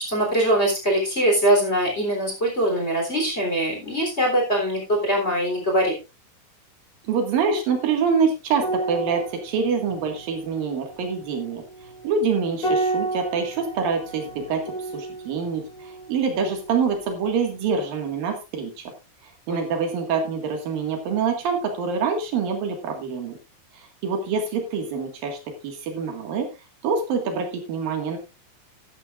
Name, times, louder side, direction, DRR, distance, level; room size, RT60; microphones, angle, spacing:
voice 1, 0.0-5.9 19.5-19.6, right 1 dB, 20° left, 0 dB, 3.6 m, -22 dB
voice 2, 7.0-11.6 12.0-14.6 14.9-18.8 19.5-23.4 23.7-25.4 25.6-26.5 26.8-28.2, right 5 dB, 75° right, 4 dB, 3.7 m, -25 dB
sound 1, 8.6-17.3 17.6-17.8, right 2 dB, 35° left, 2.9 m, -32 dB
14.0 x 10.5 x 2.5 m, 0.28 s
omnidirectional pair, 4.1 m